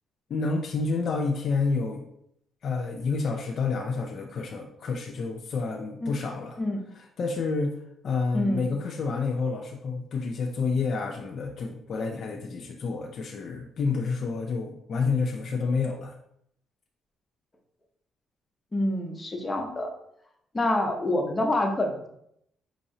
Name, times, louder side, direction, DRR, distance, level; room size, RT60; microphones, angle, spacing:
voice 1, 0.3-2.0 2.6-6.6 7.2-7.7 8.0-16.1, left 4 dB, 60° left, 2 dB, 0.5 m, -29 dB
voice 2, 8.3-8.7 18.7-19.9 20.5-22.1, left 1 dB, 20° left, 2 dB, 0.8 m, -27 dB
5.5 x 3.0 x 2.7 m, 0.74 s
cardioid pair, 90°, 0 cm